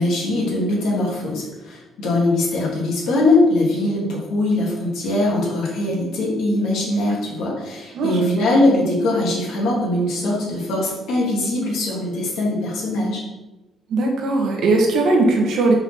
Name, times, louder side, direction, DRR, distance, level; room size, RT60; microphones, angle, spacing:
voice 1, 0.0-13.2, left 2 dB, 65° left, -3 dB, 3.0 m, -21 dB
voice 2, 7.9-8.5 13.9-15.7, right 3 dB, 55° right, 1 dB, 1.7 m, -19 dB
5.7 x 5.5 x 6.1 m, 1.1 s
cardioid pair, 175°, 0 cm